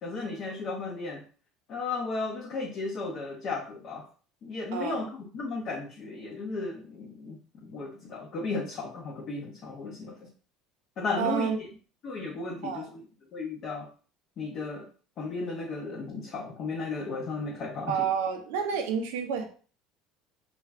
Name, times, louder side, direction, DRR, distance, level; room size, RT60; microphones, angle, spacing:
voice 1, 0.0-1.2 1.7-4.1 4.4-5.0 5.3-10.2 11.0-11.5 12.0-13.0 13.3-13.9 14.4-14.9 15.2-17.9, left 3 dB, 45° left, -2 dB, 0.6 m, -34 dB
voice 2, 4.7-5.1 11.2-11.6 12.6-12.9 17.9-19.5, right 7 dB, 90° right, 5 dB, 0.5 m, -29 dB
2.5 x 2.3 x 3.2 m, 0.40 s
cardioid pair, 130°, 0 cm